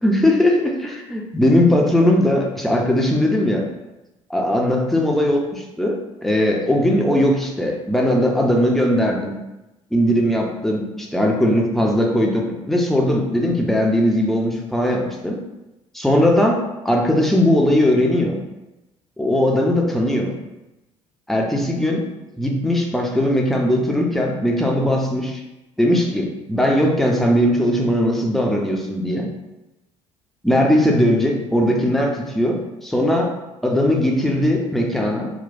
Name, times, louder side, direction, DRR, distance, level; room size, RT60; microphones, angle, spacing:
voice 1, 0.0-3.7 4.3-9.3 9.9-15.4 15.9-18.4 19.2-20.4 21.3-22.0 22.4-25.4 25.8-29.3 30.4-33.3 33.6-35.3, left 1 dB, ahead, 0 dB, 0.6 m, -19 dB
4.1 x 2.2 x 2.6 m, 0.99 s
figure-of-eight pair, 55°, 16 cm